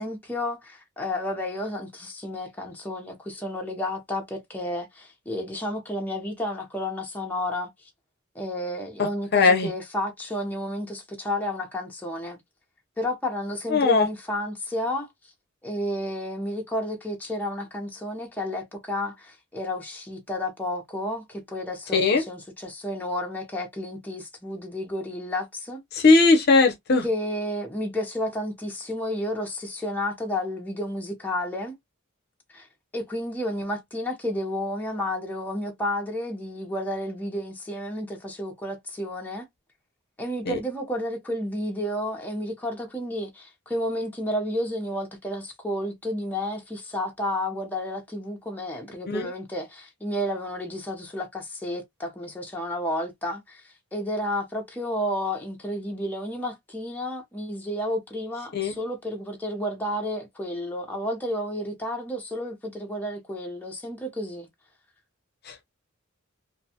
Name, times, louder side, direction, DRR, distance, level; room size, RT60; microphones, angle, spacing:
voice 1, 0.0-7.9 8.3-12.4 13.0-15.1 15.6-25.8 27.0-31.7 32.5-32.7 32.9-39.5 40.2-64.5, left 1 dB, 10° left, 0.7 m, -31 dB
voice 2, 9.0-9.7 13.7-14.1 21.9-22.2 25.9-27.0 40.5-40.6 49.1-49.3 58.5-58.7 65.5-65.6, left 3 dB, 50° left, 0.6 m, -19 dB
2.6 x 2.2 x 2.7 m
head